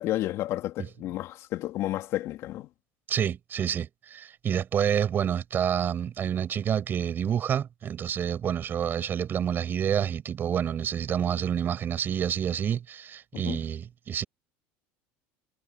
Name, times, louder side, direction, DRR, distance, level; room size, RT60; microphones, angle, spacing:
voice 1, 0.0-2.7 13.3-13.6, left 15 dB, 55° left, 2.7 m, -31 dB
voice 2, 3.1-14.2, right 9 dB, 35° right, 7.1 m, -28 dB
supercardioid pair, 120°, 6 cm